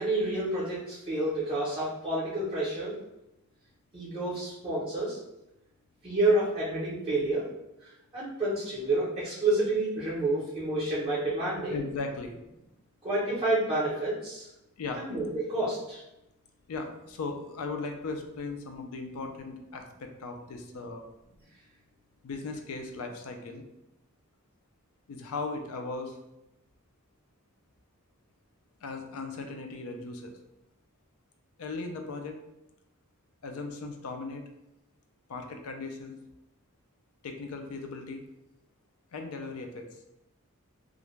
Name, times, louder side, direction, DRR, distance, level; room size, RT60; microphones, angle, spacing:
voice 1, 0.0-2.9 3.9-5.2 6.0-7.5 8.1-11.8 13.0-14.5 15.0-16.0, right 2 dB, 25° right, -9 dB, 0.6 m, -29 dB
voice 2, 11.7-12.4 14.8-15.0 16.7-21.0 22.2-23.6 25.1-26.2 28.8-30.4 31.6-32.4 33.4-34.4 35.3-36.2 37.2-38.2 39.1-39.9, left 3 dB, 75° left, 4 dB, 0.4 m, -37 dB
2.4 x 2.1 x 3.0 m, 0.89 s
head